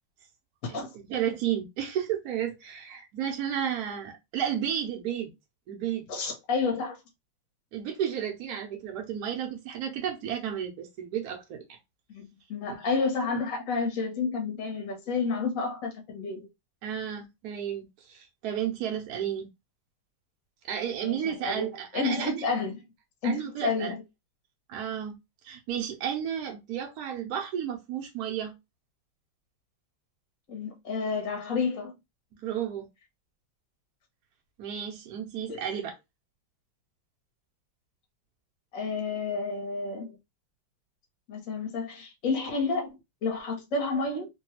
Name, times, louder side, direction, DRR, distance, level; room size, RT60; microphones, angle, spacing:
voice 1, 0.9-5.3 5.7-6.0 7.7-11.8 16.8-19.5 20.6-22.4 23.2-23.9 24.7-25.2 25.4-28.5 32.4-32.9 34.6-35.9, right 9 dB, 70° right, 0.9 m, -32 dB
voice 2, 6.1-7.0 12.1-16.5 21.0-22.7 23.2-24.0 30.5-31.9 35.5-35.7 38.7-40.2 41.3-42.9 43.2-44.3, left 4 dB, 50° left, 1.1 m, -30 dB
3.2 x 2.2 x 2.9 m
omnidirectional pair, 2.2 m